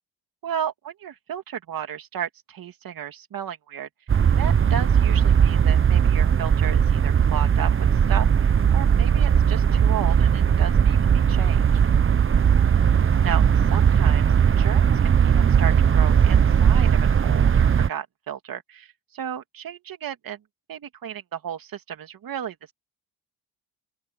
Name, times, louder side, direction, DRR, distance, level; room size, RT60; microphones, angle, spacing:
voice 1, 0.4-3.9 4.4-7.7 8.1-11.6 13.2-14.2 14.6-20.4 20.7-22.7, right 9 dB, 60° right, 3.0 m, -34 dB
sound 1, 4.1-17.9, right 7 dB, 35° right, 0.9 m, -18 dB
open air
cardioid pair, 90°, 38 cm